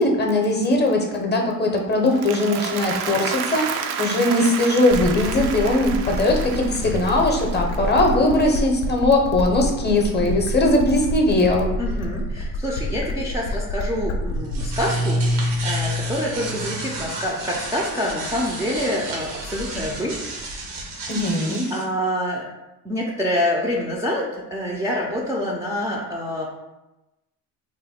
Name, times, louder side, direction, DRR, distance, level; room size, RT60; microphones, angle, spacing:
voice 1, 0.0-11.7 21.1-21.7, left 1 dB, 25° left, 2 dB, 0.7 m, -20 dB
Applause, 2.0-8.3, right 7 dB, 65° right, 0.5 m, -31 dB
sound 1, 4.9-14.9, left 1 dB, 80° left, 0.6 m, -28 dB
voice 2, 11.8-20.2 21.7-22.4 22.8-26.5, left 1 dB, 10° right, -4 dB, 0.4 m, -26 dB
sound 2, 14.3-21.8, equal, 85° right, 1.0 m, -28 dB
3.0 x 2.1 x 4.1 m, 1.0 s
supercardioid pair, 85°, 42 cm